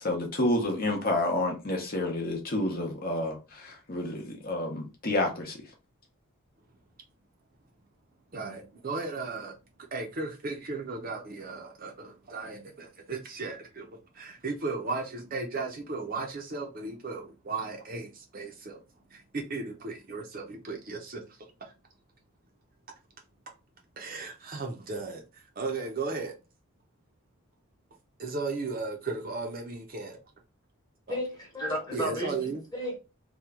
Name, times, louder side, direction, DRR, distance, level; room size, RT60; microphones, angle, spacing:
voice 1, 0.0-5.7, left 1 dB, 40° left, 0.7 m, -29 dB
voice 2, 8.3-9.5 9.9-13.9 14.1-18.8 19.1-21.2 21.6-21.7 24.0-26.3 28.2-30.2 31.1-31.2 31.9-32.6, right 3 dB, 40° right, 0.6 m, -35 dB
voice 3, 31.1-33.0, equal, 15° left, 1.1 m, -33 dB
2.9 x 2.3 x 3.5 m
head